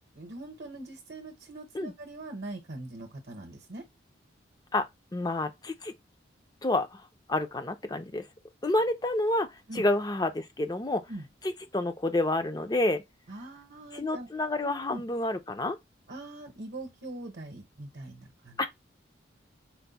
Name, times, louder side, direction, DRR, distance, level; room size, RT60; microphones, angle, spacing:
voice 1, 0.2-3.8 9.7-9.8 11.1-11.2 13.3-14.3 14.6-15.0 16.1-18.6, right 2 dB, 55° right, 0.8 m, -42 dB
voice 2, 4.7-5.9 6.6-8.2 8.6-11.1 11.4-13.0 13.9-15.8 18.6-18.7, left 2 dB, 20° left, 0.4 m, -29 dB
4.5 x 2.1 x 4.0 m
head